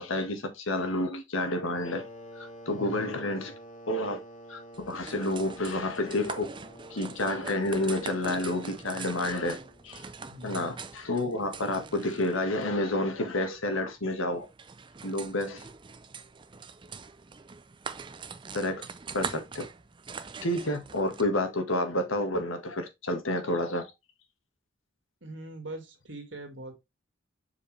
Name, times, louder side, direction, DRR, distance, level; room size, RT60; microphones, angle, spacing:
voice 1, 0.0-2.1 2.3-3.5 3.9-4.2 4.5-6.5 6.9-9.6 9.8-10.0 10.4-14.5 15.0-15.6 18.5-18.9 19.1-19.7 20.4-23.9, left 1 dB, 85° left, 1.7 m, -30 dB
sound 1, 1.8-10.1, equal, 40° left, 1.5 m, -49 dB
voice 2, 2.7-3.1 10.3-10.8 25.2-26.7, right 1 dB, 65° right, 2.3 m, -42 dB
sound 2, 4.7-21.2, right 5 dB, 25° right, 0.5 m, -43 dB
7.2 x 4.9 x 3.3 m
head